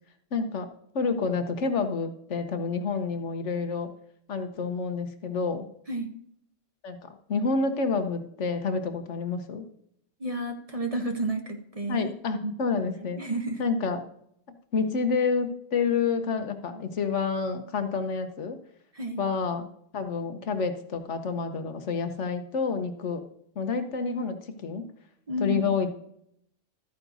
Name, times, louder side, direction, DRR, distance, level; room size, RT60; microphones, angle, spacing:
voice 1, 0.3-0.7 0.9-3.9 4.3-5.7 6.8-9.7 11.9-13.2 13.6-14.0 14.7-18.6 19.2-19.7 19.9-23.2 23.6-24.9 25.4-25.9, left 5 dB, 75° left, 7 dB, 1.2 m, -28 dB
voice 2, 10.2-12.1 12.4-12.5 13.0-13.6 18.9-19.2 25.3-25.7, right 2 dB, 35° right, 4 dB, 0.9 m, -31 dB
13.0 x 9.5 x 2.6 m, 0.70 s
omnidirectional pair, 1.3 m